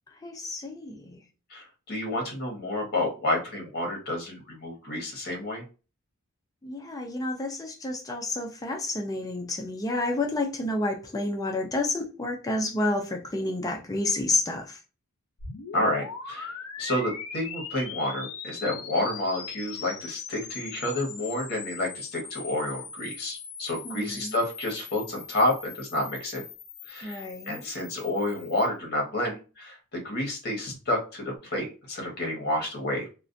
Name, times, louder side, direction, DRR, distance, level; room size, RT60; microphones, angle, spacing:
voice 1, 0.2-1.2 6.6-14.8 23.8-24.4 27.0-27.6, left 2 dB, 15° left, 0.4 m, -30 dB
voice 2, 1.5-5.6 15.7-16.5 16.8-26.4 26.9-33.1, left 1 dB, 45° left, 1.0 m, -30 dB
sound 1, 15.4-28.7, left 6 dB, 75° left, 0.5 m, -41 dB
2.4 x 2.1 x 2.5 m
head